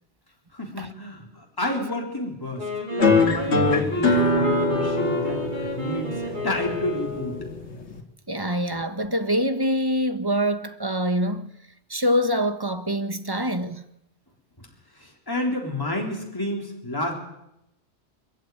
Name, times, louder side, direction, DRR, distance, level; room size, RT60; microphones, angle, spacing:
voice 1, 0.5-7.4 14.6-14.7 15.0-17.1, left 1 dB, 20° left, 3.6 m, -30 dB
Wind instrument woodwind instrument, 2.6-7.6, left 1 dB, 45° right, 4.7 m, -31 dB
sound 1, 3.0-8.0, left 2 dB, 80° left, 2.5 m, -23 dB
voice 2, 8.3-11.5 11.9-13.8, equal, 20° right, 1.1 m, -25 dB
22.0 x 14.5 x 9.3 m
omnidirectional pair, 1.1 m